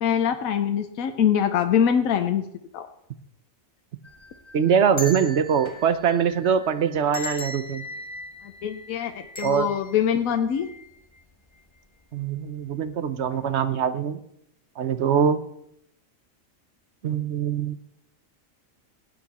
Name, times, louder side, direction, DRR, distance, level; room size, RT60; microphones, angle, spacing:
voice 1, 0.0-2.4 2.7-2.9 8.6-10.7, left 8 dB, 80° left, 7 dB, 1.2 m, -23 dB
sound 1, 4.0-11.2 11.6-11.7 12.6-12.9 13.2-13.4, left 2 dB, 20° left, 1.2 m, -40 dB
voice 2, 4.5-7.8 9.4-9.7 12.1-14.2 14.8-15.4 17.0-17.8, right 7 dB, 55° right, 12 dB, 1.0 m, -23 dB
18.0 x 8.8 x 4.2 m, 0.76 s
omnidirectional pair, 1.5 m